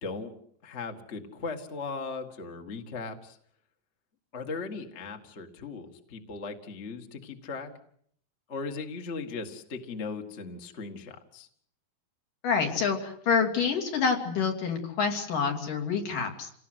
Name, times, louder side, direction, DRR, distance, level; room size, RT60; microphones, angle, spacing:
voice 1, 0.0-0.3 0.6-3.4 4.3-7.7 8.5-11.5, left 4 dB, 25° left, 4 dB, 1.6 m, -38 dB
voice 2, 12.4-16.5, left 5 dB, 70° left, 3 dB, 4.4 m, -27 dB
28.5 x 18.5 x 8.0 m, 0.66 s
omnidirectional pair, 4.0 m